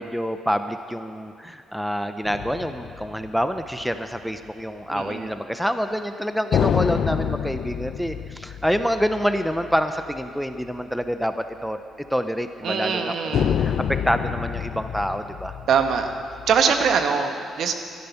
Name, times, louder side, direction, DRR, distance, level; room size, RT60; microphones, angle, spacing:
voice 1, 0.0-11.8 12.1-15.5, equal, ahead, 8 dB, 0.7 m, -27 dB
sound 1, 2.2-4.2 6.5-10.2 10.6-10.7 13.3-17.0, left 8 dB, 65° left, 0.5 m, -28 dB
voice 2, 4.9-5.3 12.6-13.6 15.7-16.1 16.5-17.7, right 6 dB, 70° right, 6 dB, 1.3 m, -22 dB
15.0 x 12.5 x 5.8 m, 2.3 s
cardioid pair, 90°, 0 cm